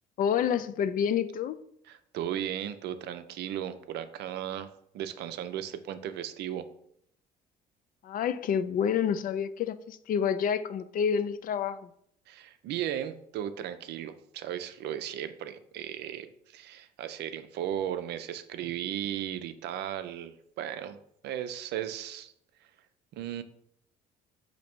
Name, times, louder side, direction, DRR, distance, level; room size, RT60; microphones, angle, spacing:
voice 1, 0.2-1.6 8.0-11.9, left 8 dB, 45° left, 0.4 m, -28 dB
voice 2, 1.8-6.7 12.3-22.3 22.6-22.7 23.1-23.4, right 10 dB, 60° right, 0.5 m, -36 dB
4.1 x 2.8 x 4.3 m
hypercardioid pair, 55°, 19 cm